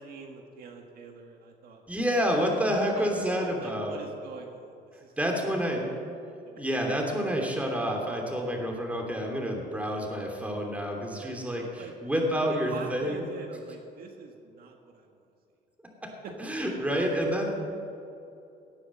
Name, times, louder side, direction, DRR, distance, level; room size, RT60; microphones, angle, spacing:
voice 1, 0.0-2.0 2.8-3.1 3.4-6.0 6.5-6.6 11.1-11.9 12.4-15.1 16.2-16.7, right 5 dB, 60° right, 2 dB, 1.7 m, -45 dB
voice 2, 1.9-4.0 5.2-5.9 6.6-13.3 16.0-16.1 16.4-17.6, equal, 10° right, 1 dB, 3.0 m, -29 dB
17.5 x 9.8 x 7.6 m, 2.7 s
cardioid pair, 110°, 17 cm